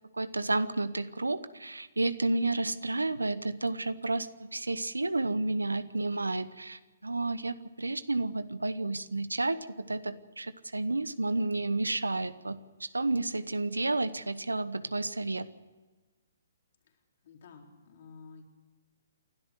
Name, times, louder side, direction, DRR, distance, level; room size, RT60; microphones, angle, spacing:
voice 1, 0.1-15.5, right 2 dB, 80° right, 15 dB, 1.0 m, -31 dB
voice 2, 16.8-18.4, left 5 dB, 50° left, 2 dB, 4.2 m, -52 dB
28.5 x 12.5 x 7.9 m, 1.3 s
figure-of-eight pair, 125°, 0 cm